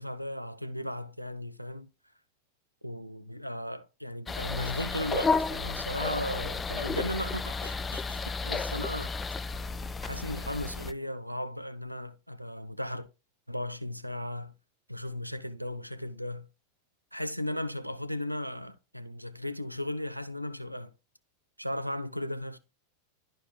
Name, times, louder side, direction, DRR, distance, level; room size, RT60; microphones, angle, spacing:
voice 1, 0.0-1.9 2.8-9.1 10.0-13.1 13.5-14.5 14.9-16.5 17.1-20.9 21.6-22.6, left 1 dB, 90° right, 0.6 m, -36 dB
sound 1, 4.3-10.9, left 4 dB, 15° left, 0.3 m, -32 dB
12.0 x 4.5 x 2.3 m
figure-of-eight pair, 90°, 0 cm